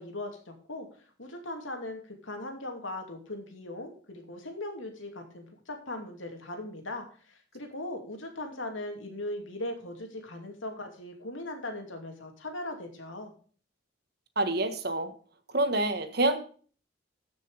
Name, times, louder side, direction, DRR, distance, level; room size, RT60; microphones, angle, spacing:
voice 1, 0.0-13.3, left 1 dB, 80° left, 4 dB, 2.7 m, -39 dB
voice 2, 14.3-15.1 15.5-16.4, right 2 dB, 55° right, 8 dB, 1.5 m, -27 dB
14.0 x 6.3 x 5.1 m, 0.42 s
head